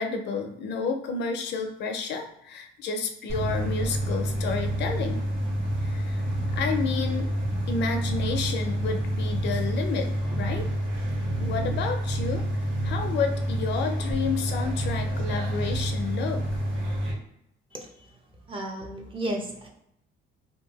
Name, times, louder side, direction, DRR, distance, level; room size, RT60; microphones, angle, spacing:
voice 1, 0.0-5.2 5.8-6.2 6.5-7.3 7.7-10.7 11.4-12.4 12.8-16.4, left 5 dB, 60° left, 5 dB, 0.4 m, -30 dB
sound 1, 3.3-17.1, right 1 dB, 70° right, 1.1 m, -28 dB
voice 2, 18.5-19.7, right 1 dB, 25° right, 0 dB, 0.6 m, -33 dB
2.7 x 2.2 x 2.9 m, 0.76 s
cardioid pair, 125°, 21 cm